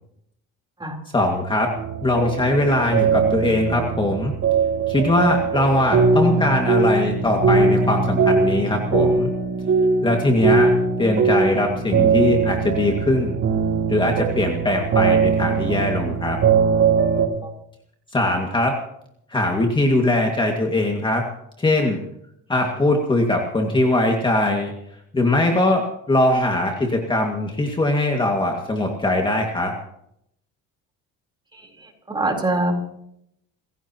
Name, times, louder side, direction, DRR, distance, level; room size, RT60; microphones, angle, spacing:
voice 1, 1.1-1.7 2.0-4.3 4.9-9.3 10.0-10.7 11.0-13.4 13.9-16.4 18.1-18.7 19.3-21.2 21.6-22.0 22.5-24.7 25.1-29.7, left 1 dB, 15° left, 1 dB, 2.1 m, -21 dB
sound 1, 1.8-17.3, right 4 dB, 50° right, 3.4 m, -20 dB
voice 2, 32.1-32.7, right 2 dB, 15° right, 2 dB, 4.0 m, -23 dB
28.5 x 15.5 x 3.0 m, 0.74 s
cardioid pair, 135°, 29 cm